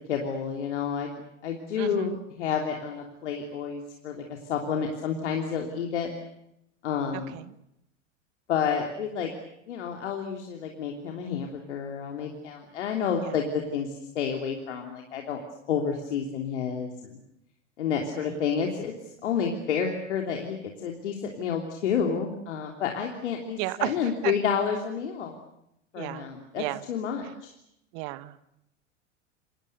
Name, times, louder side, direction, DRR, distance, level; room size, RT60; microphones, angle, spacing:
voice 1, 0.1-1.2 1.4-6.1 6.8-7.4 8.5-9.3 9.7-15.4 15.7-17.2 17.8-25.4 25.9-27.5, left 7 dB, 65° left, 2 dB, 3.3 m, -30 dB
voice 2, 1.8-2.2 7.1-7.5 13.2-13.4 18.1-18.4 23.6-24.0 24.2-24.3 26.0-26.3 26.6-26.8 27.9-28.4, right 19 dB, 45° right, 15 dB, 1.5 m, -33 dB
29.0 x 24.5 x 6.9 m, 0.80 s
figure-of-eight pair, 85°, 38 cm